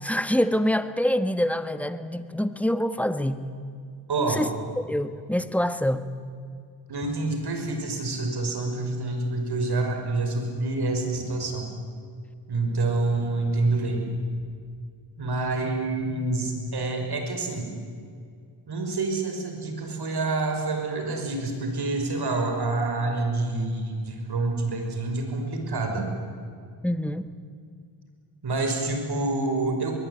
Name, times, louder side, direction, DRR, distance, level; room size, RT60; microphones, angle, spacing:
voice 1, 0.0-3.4 4.2-4.5 4.8-6.1 26.8-27.3, equal, 5° left, 11 dB, 1.4 m, -25 dB
voice 2, 4.1-4.5 6.9-11.7 12.5-14.1 15.2-17.7 18.7-26.1 28.4-29.9, right 2 dB, 50° right, 4 dB, 6.1 m, -27 dB
24.0 x 20.5 x 9.7 m, 2.2 s
cardioid pair, 85°, 49 cm